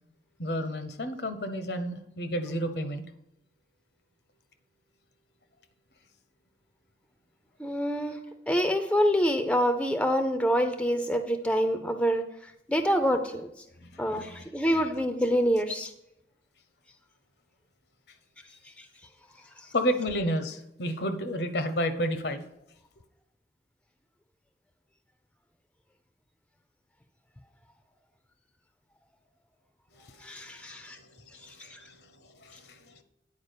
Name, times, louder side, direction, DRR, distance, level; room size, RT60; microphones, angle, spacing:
voice 1, 0.4-3.0 13.8-14.5 19.7-22.4 29.9-33.0, equal, 65° left, 9 dB, 0.9 m, -32 dB
voice 2, 7.6-8.2 8.5-12.3 12.7-13.5 14.0-15.9 18.8-18.9 30.2-31.0 31.7-31.8, equal, 5° left, 7 dB, 0.5 m, -26 dB
9.5 x 4.8 x 6.7 m, 0.82 s
head